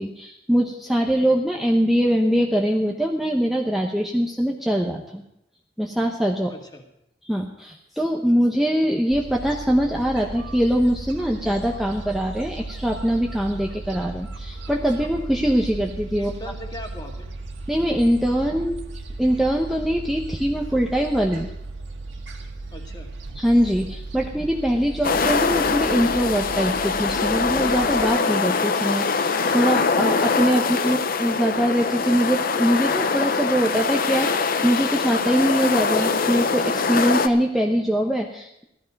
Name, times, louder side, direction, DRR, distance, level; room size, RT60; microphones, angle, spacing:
voice 1, 0.0-5.2 5.8-6.5 7.2-16.3 17.7-18.8 19.2-21.5 23.4-38.6, equal, ahead, 0 dB, 0.8 m, -22 dB
voice 2, 6.5-6.8 16.2-17.3 22.7-23.1 30.8-31.0, equal, 20° left, 2 dB, 2.0 m, -39 dB
Gull seagull, 9.1-28.0, right 2 dB, 85° right, 1.7 m, -36 dB
sound 1, 25.0-37.3, left 4 dB, 50° left, 0.7 m, -23 dB
15.5 x 13.0 x 5.3 m, 0.81 s
head